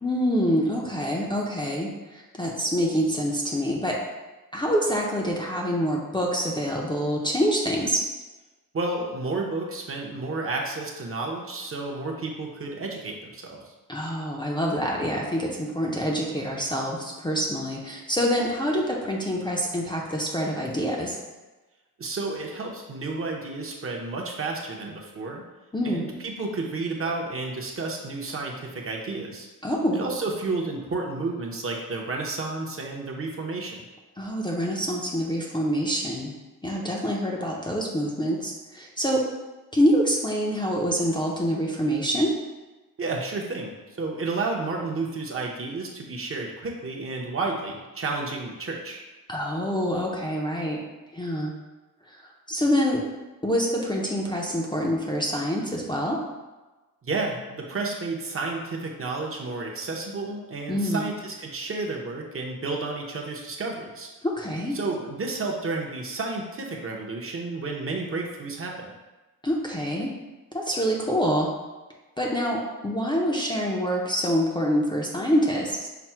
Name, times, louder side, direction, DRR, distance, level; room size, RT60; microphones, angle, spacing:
voice 1, 0.0-4.0 4.5-8.0 13.9-21.2 25.7-26.1 29.6-30.0 34.2-36.3 36.6-39.3 39.7-42.3 49.3-50.8 51.1-51.5 52.1-53.0 53.4-56.2 60.7-61.1 64.2-64.8 69.4-70.1 70.5-71.5 72.2-75.9, equal, 15° left, -3 dB, 0.5 m, -26 dB
voice 2, 8.7-13.6 22.0-25.4 25.8-29.5 29.9-33.8 43.0-49.0 57.0-64.1 64.7-68.9, right 3 dB, 40° right, -1 dB, 0.7 m, -31 dB
5.8 x 2.0 x 4.3 m, 1.2 s
wide cardioid pair, 145°, 34 cm